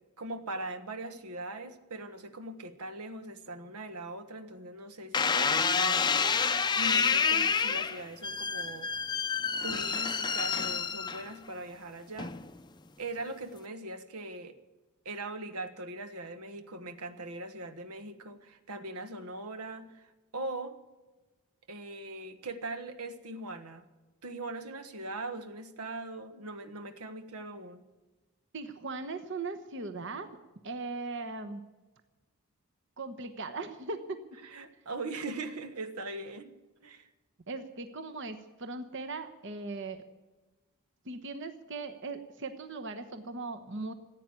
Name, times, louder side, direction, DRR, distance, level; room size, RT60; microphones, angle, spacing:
voice 1, 0.2-6.2 6.7-8.9 9.6-12.3 13.0-14.6 15.0-20.8 21.7-23.9 24.2-27.9 34.4-36.5 36.8-37.1, right 2 dB, 90° right, 9 dB, 1.4 m, -40 dB
sound 1, 5.1-11.5 12.2-12.7, left 5 dB, 20° left, 0.5 m, -28 dB
voice 2, 28.5-30.3 30.6-31.6 33.0-34.2 37.5-40.0 41.0-43.9, right 3 dB, 55° right, 8 dB, 1.0 m, -39 dB
15.0 x 9.1 x 9.6 m, 1.2 s
head